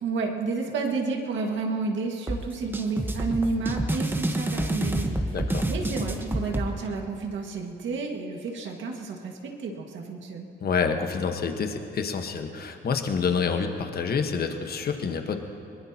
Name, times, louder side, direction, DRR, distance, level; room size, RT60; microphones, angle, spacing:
voice 1, 0.0-5.4 5.7-10.5, right 4 dB, 70° right, 2 dB, 1.9 m, -31 dB
sound 1, 2.3-6.7, right 1 dB, 10° right, 1.2 m, -28 dB
voice 2, 5.3-5.7 10.6-15.4, left 5 dB, 50° left, 6 dB, 1.3 m, -28 dB
23.0 x 20.5 x 2.9 m, 2.7 s
cardioid pair, 90°, 20 cm